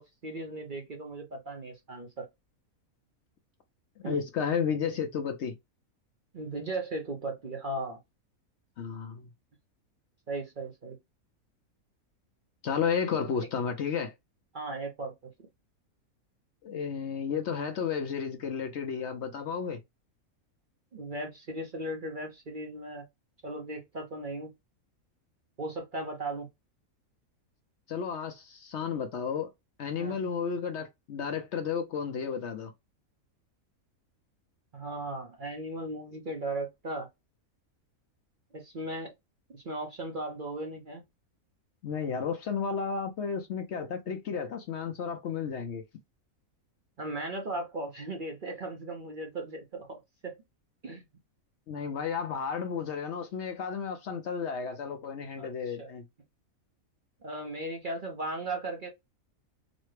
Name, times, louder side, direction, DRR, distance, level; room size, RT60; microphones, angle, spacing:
voice 1, 0.0-2.3 4.0-4.2 6.3-8.0 10.3-11.0 14.5-15.1 20.9-23.1 23.4-24.5 25.6-26.5 29.9-30.1 34.7-37.1 38.5-39.1 39.5-41.0 47.0-50.4 50.8-51.0 55.4-55.9 57.2-58.9, right 2 dB, 45° right, 0.7 m, -37 dB
voice 2, 4.0-5.6 8.8-9.3 12.6-14.1 16.6-19.8 27.9-29.5 29.8-32.7 41.8-45.8 51.7-56.0, left 6 dB, 60° left, 0.8 m, -32 dB
4.1 x 2.1 x 3.2 m
omnidirectional pair, 1.5 m